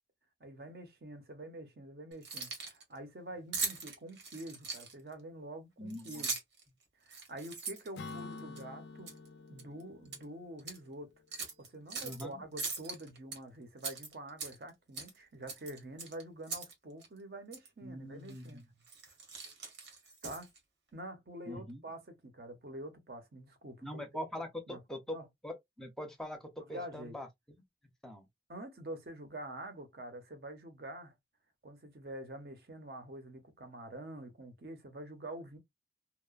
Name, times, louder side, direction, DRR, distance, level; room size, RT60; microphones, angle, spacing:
voice 1, 0.4-6.3 7.0-9.1 9.5-18.6 20.2-20.5 20.9-24.0 24.3-24.8 25.1-25.3 26.6-27.2 28.5-31.1 31.6-35.6, right 1 dB, 60° right, 0.7 m, -47 dB
Keys jangling, 2.1-2.8 3.5-5.1 5.9-6.6 7.1-8.6 9.1-9.3 9.6-10.2 10.6-10.8 11.3-12.2 12.6-13.4 13.8-14.7 14.9-15.2 15.5-16.7 17.0-17.1 17.5-17.7 18.3-18.5 18.8-20.6, right 4 dB, 90° right, 1.1 m, -40 dB
voice 2, 5.8-6.2 12.0-12.4 17.8-18.6 21.5-21.8 23.8-25.2 25.4-27.3 28.0-28.3, left 1 dB, 5° left, 0.5 m, -43 dB
Acoustic guitar / Strum, 8.0-11.6, left 3 dB, 80° left, 0.4 m, -48 dB
2.8 x 2.1 x 2.3 m
head